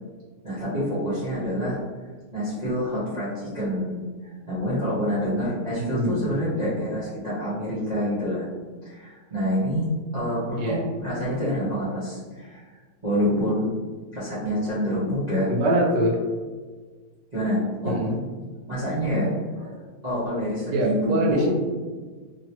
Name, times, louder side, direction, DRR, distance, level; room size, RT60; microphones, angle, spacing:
voice 1, 0.4-1.8 2.3-8.5 8.8-12.6 13.0-13.7 14.1-15.5 17.3-18.0 18.7-19.3 20.0-21.5, equal, 30° right, -13 dB, 1.1 m, -27 dB
voice 2, 5.8-6.3 10.5-10.8 15.5-16.2 17.8-18.2 18.8-18.9 19.6-19.8 20.7-21.5, right 1 dB, 80° right, -1 dB, 1.3 m, -24 dB
3.2 x 2.9 x 2.8 m, 1.4 s
omnidirectional pair, 1.9 m